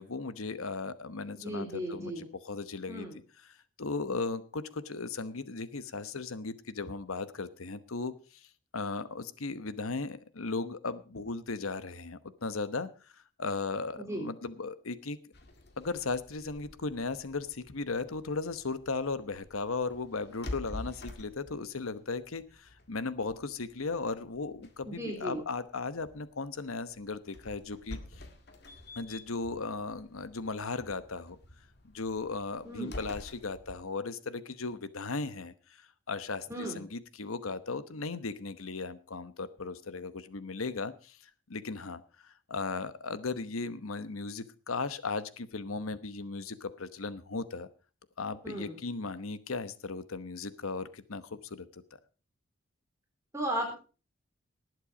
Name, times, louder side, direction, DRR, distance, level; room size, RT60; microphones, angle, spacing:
voice 1, 0.0-3.1 3.4-8.5 8.7-12.9 13.4-15.2 15.8-28.0 29.0-31.4 31.8-41.2 41.5-47.7 48.2-51.8, left 3 dB, 85° left, 14 dB, 1.0 m, -36 dB
voice 2, 1.4-2.3 2.9-3.2 14.0-14.3 24.9-25.4 32.6-32.9 36.5-36.8 48.4-48.8 53.3-53.7, right 1 dB, 15° right, 1 dB, 3.7 m, -36 dB
sound 1, 15.3-33.8, left 1 dB, 50° left, 2.0 m, -49 dB
18.5 x 8.0 x 5.0 m, 0.36 s
head